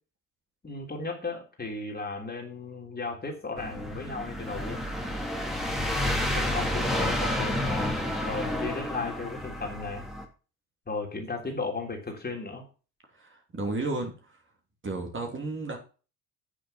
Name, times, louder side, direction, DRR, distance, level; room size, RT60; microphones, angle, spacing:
voice 1, 0.6-4.8 6.0-7.9 8.2-10.0 10.9-12.6, left 3 dB, 20° left, 1 dB, 3.3 m, -35 dB
sound 1, 3.6-10.2, left 1 dB, ahead, 2.8 m, -30 dB
voice 2, 13.1-14.4 14.8-15.8, right 2 dB, 25° right, 2 dB, 2.9 m, -33 dB
8.9 x 7.0 x 5.7 m, 0.35 s
figure-of-eight pair, 50°, 44 cm